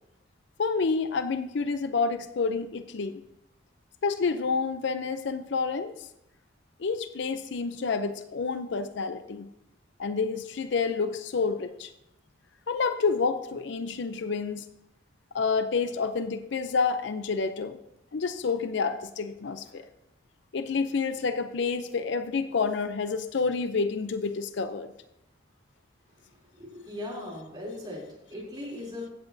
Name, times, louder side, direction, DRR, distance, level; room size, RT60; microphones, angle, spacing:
voice 1, 0.6-3.2 4.0-5.9 6.8-9.5 10.0-11.9 12.7-14.6 15.3-17.8 18.1-19.8 20.5-24.9, left 4 dB, 60° left, 10 dB, 0.5 m, -29 dB
voice 2, 26.1-29.1, left 1 dB, 20° right, -4 dB, 3.1 m, -39 dB
15.0 x 8.1 x 2.7 m, 0.85 s
head